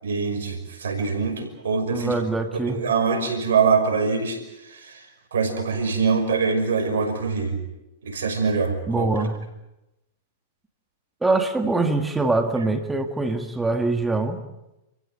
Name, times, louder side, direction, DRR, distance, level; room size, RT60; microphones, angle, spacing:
voice 1, 0.0-2.2 2.5-5.1 5.3-7.6 8.0-9.1, right 5 dB, 80° right, 6 dB, 5.6 m, -24 dB
voice 2, 1.9-2.8 8.9-9.4 11.2-14.4, right 3 dB, 10° right, 6 dB, 1.9 m, -23 dB
28.5 x 15.5 x 8.9 m, 0.94 s
hypercardioid pair, 110°, 0 cm